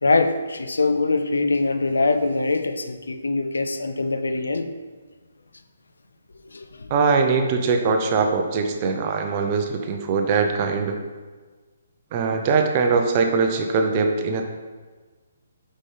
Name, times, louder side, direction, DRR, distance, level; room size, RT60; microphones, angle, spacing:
voice 1, 0.0-4.7 6.5-6.9, left 3 dB, 85° left, 0.4 m, -23 dB
voice 2, 6.9-10.9 12.1-14.4, right 4 dB, 35° right, 0.6 m, -21 dB
5.6 x 5.2 x 3.3 m
hypercardioid pair, 140°, 0 cm